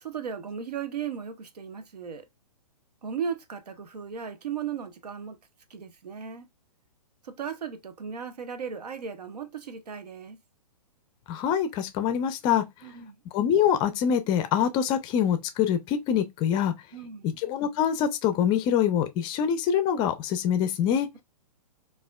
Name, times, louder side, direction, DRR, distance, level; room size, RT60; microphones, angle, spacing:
voice 1, 0.0-2.2 3.0-5.4 5.7-6.5 7.2-10.4 12.8-13.2 16.9-17.3, right 7 dB, 85° right, 0.7 m, -36 dB
voice 2, 11.3-12.6 13.3-16.7 17.2-21.1, left 9 dB, 20° left, 0.4 m, -25 dB
4.0 x 2.4 x 2.3 m
hypercardioid pair, 130°, 20 cm